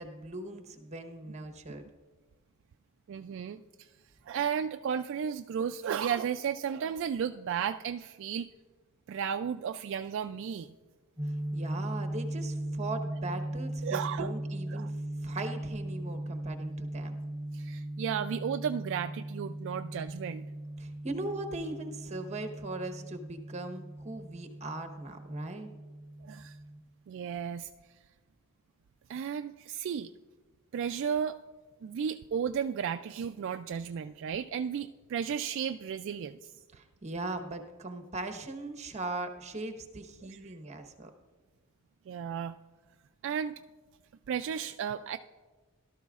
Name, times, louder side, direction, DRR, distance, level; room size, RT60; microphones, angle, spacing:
voice 1, 0.0-1.8 11.2-14.9 15.2-17.2 20.8-25.7 36.7-41.1, right 2 dB, 35° right, 6 dB, 1.1 m, -39 dB
voice 2, 3.1-3.9 4.3-8.5 9.1-10.7 13.8-14.3 14.7-14.9 17.5-20.5 26.2-26.6 27.1-27.7 29.1-30.1 30.7-31.4 31.8-36.5 40.3-40.6 42.1-42.5 43.2-43.5 44.3-45.2, right 7 dB, 60° right, 8 dB, 0.3 m, -34 dB
sound 1, 11.2-26.8, right 1 dB, 10° right, 1.5 m, -38 dB
17.0 x 12.5 x 2.4 m, 1.3 s
head